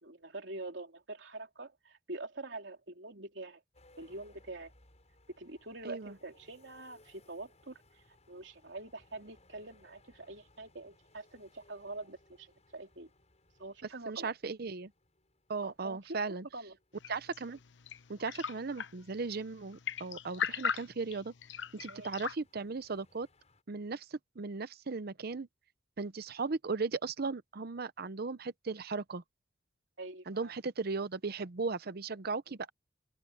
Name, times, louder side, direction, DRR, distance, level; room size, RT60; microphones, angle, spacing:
voice 1, 0.0-3.6 4.0-4.7 5.4-13.1 13.6-14.3 15.6-16.2 16.5-16.8 21.9-22.1 30.0-30.5, right 2 dB, 75° right, 3.4 m, -45 dB
sound 1, 3.7-23.6, left 2 dB, 40° left, 6.8 m, -66 dB
voice 2, 5.8-6.1 14.1-14.9 15.5-16.4 17.1-17.6 18.1-21.3 21.7-23.3 23.7-25.5 26.0-29.2 30.3-32.7, right 4 dB, 55° right, 0.7 m, -37 dB
sound 2, 16.9-22.4, left 6 dB, 75° left, 0.8 m, -40 dB
open air
head